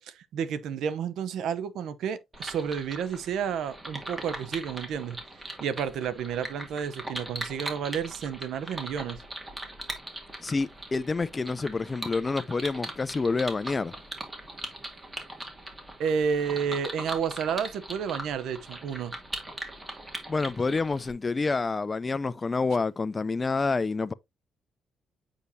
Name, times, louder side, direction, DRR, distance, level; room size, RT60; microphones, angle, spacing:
voice 1, 0.0-5.2 5.6-9.2 16.0-19.1, right 7 dB, 80° right, 0.8 m, -31 dB
sound 1, 2.3-21.1, right 1 dB, 20° right, 2.2 m, -40 dB
voice 2, 10.4-13.9 20.3-24.1, left 4 dB, 30° left, 0.5 m, -28 dB
8.1 x 5.0 x 2.7 m
cardioid pair, 90°, 0 cm